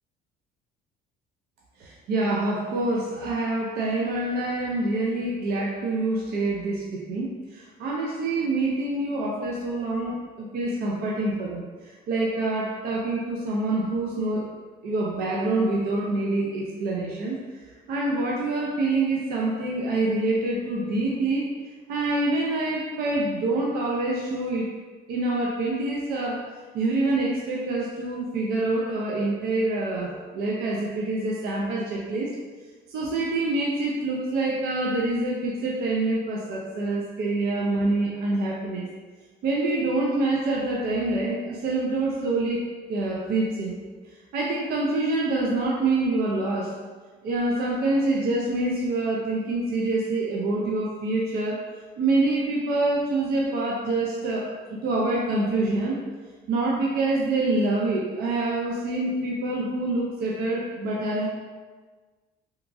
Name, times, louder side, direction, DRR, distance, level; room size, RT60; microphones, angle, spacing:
voice 1, 1.8-11.6 12.1-14.4 14.8-17.4 17.9-21.5 21.9-24.7 25.1-26.4 26.7-32.3 32.9-38.8 39.4-42.6 42.9-43.8 44.3-46.7 47.2-51.6 52.0-56.0 56.5-61.3, right 2 dB, 65° right, -3 dB, 0.5 m, -26 dB
2.8 x 2.3 x 2.5 m, 1.4 s
cardioid pair, 110°, 17 cm